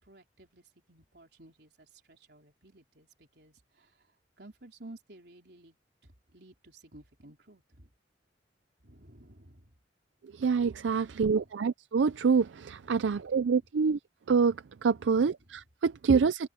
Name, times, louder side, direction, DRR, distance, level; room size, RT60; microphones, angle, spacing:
voice 1, 0.0-4.0 4.4-5.8 6.0-7.9 8.8-9.7 10.8-11.5 12.8-13.7 14.9-15.6, right 1 dB, 60° right, 4.3 m, -55 dB
voice 2, 10.4-14.0 14.3-14.5 14.8-16.5, right 5 dB, 85° right, 0.4 m, -26 dB
open air
head